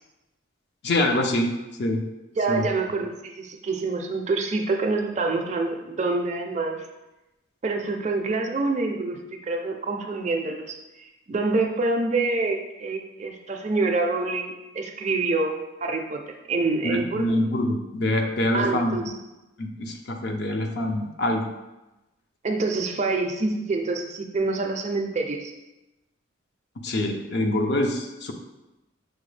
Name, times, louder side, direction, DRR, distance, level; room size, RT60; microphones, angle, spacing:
voice 1, 0.8-1.5 1.8-2.0 2.5-2.7 16.8-19.1 19.6-21.5 26.8-28.3, left 1 dB, 55° left, 3 dB, 0.5 m, -25 dB
voice 2, 2.4-6.8 7.6-9.2 9.5-17.2 18.5-19.1 22.4-25.5, right 3 dB, 35° right, 3 dB, 0.4 m, -26 dB
6.2 x 2.3 x 3.2 m, 0.99 s
head